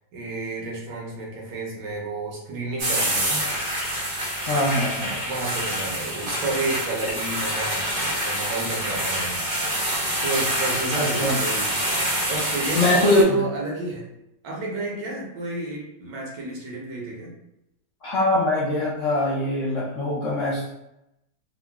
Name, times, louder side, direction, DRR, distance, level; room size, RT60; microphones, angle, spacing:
voice 1, 0.1-3.4 5.2-9.4 10.2-11.7 12.0-14.1 14.4-17.3, right 2 dB, 70° right, -2 dB, 1.3 m, -31 dB
sound 1, 2.8-13.2, right 1 dB, 90° right, 0.4 m, -26 dB
voice 2, 4.4-5.2 10.9-11.4 12.7-13.4 18.0-20.7, left 1 dB, 70° left, -6 dB, 0.7 m, -22 dB
3.7 x 2.0 x 2.2 m, 0.85 s
omnidirectional pair, 2.0 m